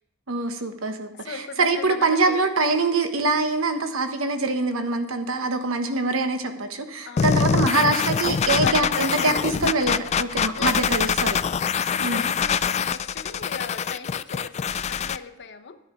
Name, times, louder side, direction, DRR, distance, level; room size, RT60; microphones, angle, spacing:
voice 1, 0.3-11.4 12.0-12.2, right 3 dB, 75° right, 7 dB, 1.2 m, -24 dB
voice 2, 1.1-2.5 5.5-5.8 7.1-7.5 8.6-9.6 10.4-11.1 11.5-15.8, left 6 dB, 60° left, 8 dB, 0.9 m, -37 dB
sound 1, 7.2-15.2, left 7 dB, 30° left, 0.3 m, -24 dB
12.0 x 9.9 x 5.1 m, 0.94 s
head